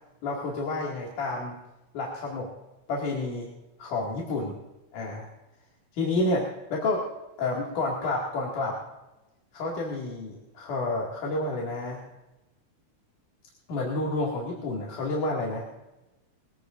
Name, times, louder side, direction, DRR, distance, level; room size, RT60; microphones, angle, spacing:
voice 1, 0.2-1.6 1.9-2.5 2.9-3.5 3.8-4.5 4.9-5.3 5.9-7.1 7.4-8.8 9.5-12.0 13.7-15.7, left 2 dB, 90° left, -3 dB, 3.8 m, -29 dB
22.0 x 16.5 x 2.6 m, 1.0 s
omnidirectional pair, 3.5 m